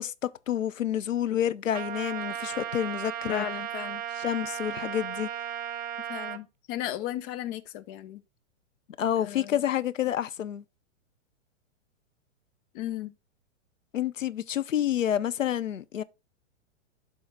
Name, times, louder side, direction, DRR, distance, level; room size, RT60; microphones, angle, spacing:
voice 1, 0.0-3.5 4.2-5.3 9.0-10.6 13.9-16.0, left 10 dB, 90° left, 0.7 m, -29 dB
Trumpet, 1.7-6.4, right 10 dB, 25° right, 0.8 m, -35 dB
voice 2, 3.3-4.0 6.1-8.2 9.2-9.6 12.7-13.1, left 13 dB, 45° left, 1.1 m, -35 dB
11.0 x 3.9 x 3.7 m
hypercardioid pair, 115°, 38 cm